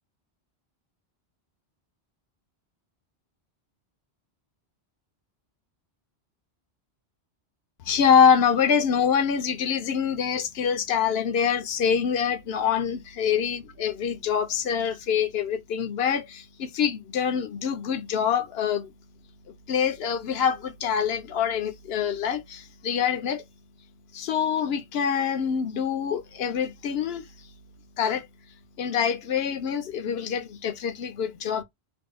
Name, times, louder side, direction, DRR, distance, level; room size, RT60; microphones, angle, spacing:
voice 1, 7.8-18.9 19.7-23.4 24.1-27.2 28.0-28.3 28.8-31.6, left 7 dB, 70° left, 0.8 m, -25 dB
2.7 x 2.3 x 3.4 m
omnidirectional pair, 1.1 m